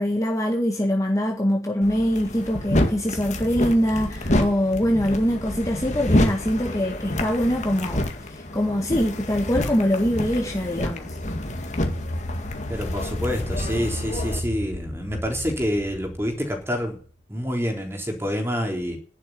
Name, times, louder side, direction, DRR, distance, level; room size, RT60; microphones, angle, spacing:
voice 1, 0.0-8.0 8.3-11.2, equal, 15° left, 1.9 m, -23 dB
sound 1, 1.8-14.4, left 1 dB, 40° left, 2.0 m, -28 dB
sound 2, 10.6-17.2, left 1 dB, 80° left, 1.7 m, -34 dB
voice 2, 12.7-17.0 17.3-19.0, equal, 15° right, 3.6 m, -27 dB
11.0 x 8.2 x 9.4 m
head